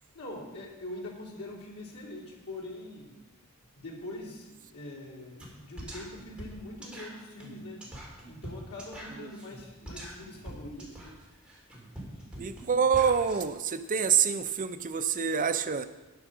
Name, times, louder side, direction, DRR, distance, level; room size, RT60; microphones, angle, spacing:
voice 1, 0.1-3.2 3.7-7.8 8.3-11.2, left 1 dB, 90° left, -5 dB, 3.1 m, -43 dB
sound 1, 5.4-5.5 5.8-13.4, right 1 dB, 5° right, 2.5 m, -44 dB
voice 2, 12.4-15.9, right 7 dB, 35° right, 9 dB, 0.5 m, -26 dB
9.1 x 8.2 x 6.1 m, 1.1 s
head